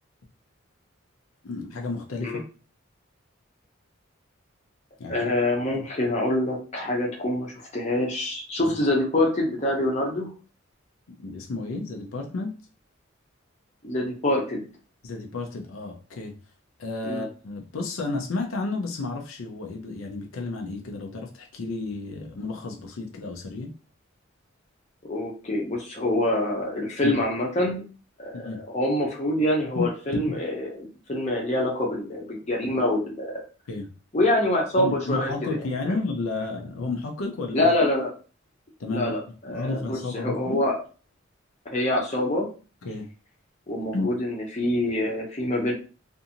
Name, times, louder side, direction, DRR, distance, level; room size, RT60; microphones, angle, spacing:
voice 1, 1.4-2.4 5.0-5.3 5.7-5.8 8.6-8.7 11.1-12.6 15.0-16.4 16.8-23.7 27.0-27.2 28.3-28.6 29.7-30.4 33.7-33.9 34.8-37.7 38.8-39.2 39.5-40.6 42.8-43.1 43.9-44.1, left 3 dB, 75° left, 2 dB, 0.5 m, -32 dB
voice 2, 5.1-10.3 13.8-14.6 17.1-17.2 25.0-27.8 28.2-33.4 34.1-35.6 35.8-36.0 37.5-38.1 38.9-39.2 39.4-40.8 41.7-42.5 43.7-45.7, left 1 dB, 30° left, -1 dB, 0.7 m, -25 dB
2.6 x 2.5 x 2.7 m, 0.36 s
head